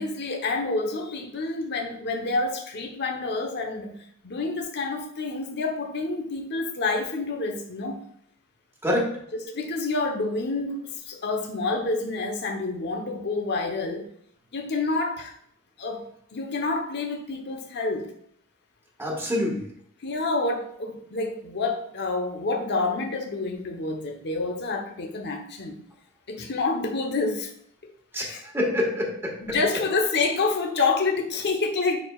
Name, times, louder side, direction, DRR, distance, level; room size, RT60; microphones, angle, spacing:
voice 1, 0.0-4.0 4.2-8.0 9.5-14.1 14.5-15.3 15.8-18.1 20.0-25.7 26.3-27.5 28.2-28.4 29.4-32.0, left 3 dB, 50° left, 2 dB, 1.1 m, -28 dB
voice 2, 8.8-9.2 19.0-19.7 28.1-29.6, left 1 dB, 10° right, -2 dB, 1.6 m, -26 dB
9.5 x 4.8 x 2.4 m, 0.67 s
head